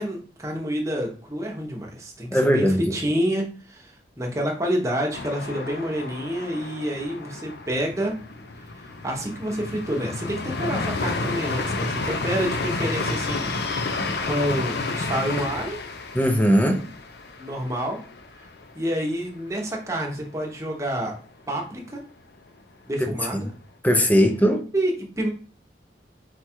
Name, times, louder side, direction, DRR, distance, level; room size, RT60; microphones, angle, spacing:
voice 1, 0.0-8.1 9.0-15.8 17.4-18.0 18.7-21.2 21.5-22.0 22.9-23.5 24.7-25.3, equal, 15° right, 0.9 m, -28 dB
voice 2, 2.3-2.9 16.1-16.9 23.1-23.5 23.8-24.6, equal, 10° left, 0.5 m, -20 dB
sound 1, 5.1-18.8 19.2-19.3 19.6-20.2, left 3 dB, 65° left, 0.5 m, -31 dB
4.5 x 2.4 x 4.4 m
head